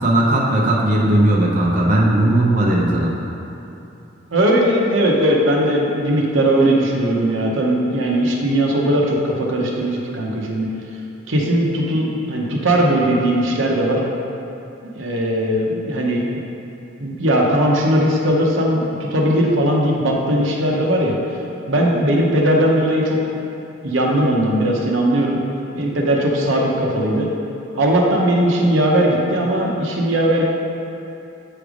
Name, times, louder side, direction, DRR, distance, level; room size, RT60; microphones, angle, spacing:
voice 1, 0.0-3.1, right 1 dB, 40° right, -4 dB, 0.7 m, -17 dB
voice 2, 4.3-10.7 11.3-14.0 14.9-16.3 17.0-21.2 21.7-23.2 23.8-25.4 25.7-27.3 27.7-30.4, right 1 dB, 70° right, -1 dB, 0.8 m, -18 dB
7.9 x 3.3 x 5.0 m, 2.8 s
head